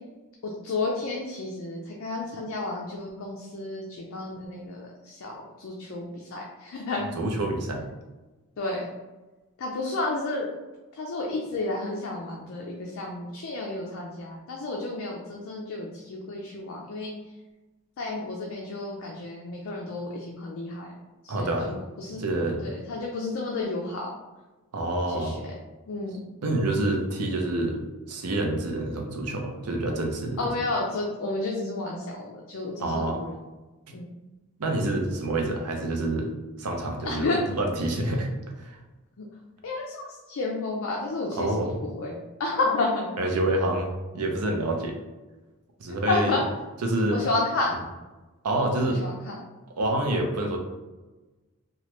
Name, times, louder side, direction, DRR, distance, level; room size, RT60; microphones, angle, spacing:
voice 1, 0.4-7.1 8.6-8.9 9.6-10.5 10.9-17.1 18.0-20.9 21.2-22.2 22.6-24.1 25.1-25.5 25.9-26.2 30.4-33.4 33.9-34.1 37.0-37.4 39.2-39.3 39.6-43.1 45.9-46.4 47.1-47.8 48.9-49.4, left 2 dB, 60° left, -1 dB, 0.4 m, -31 dB
voice 2, 7.2-7.8 21.3-21.7 22.2-22.6 24.7-25.4 26.4-27.8 28.1-30.5 32.8-33.2 34.6-36.3 36.6-38.3 38.6-38.8 41.4-41.8 43.2-45.0 45.8-46.4 46.8-47.2 48.4-49.0 49.8-50.6, right 1 dB, 85° right, 2 dB, 0.6 m, -27 dB
3.0 x 2.3 x 3.0 m, 1.1 s
head